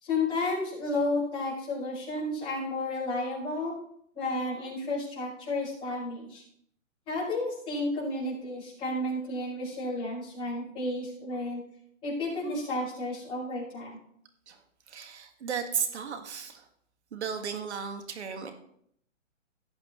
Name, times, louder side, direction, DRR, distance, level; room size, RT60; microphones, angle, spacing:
voice 1, 0.0-3.8 4.1-6.4 7.1-11.6 12.0-14.0, left 2 dB, 15° left, -8 dB, 5.0 m, -32 dB
voice 2, 14.9-16.6 17.1-18.5, right 6 dB, 55° right, 6 dB, 1.7 m, -34 dB
17.5 x 7.9 x 3.1 m, 0.71 s
hypercardioid pair, 160°, 39 cm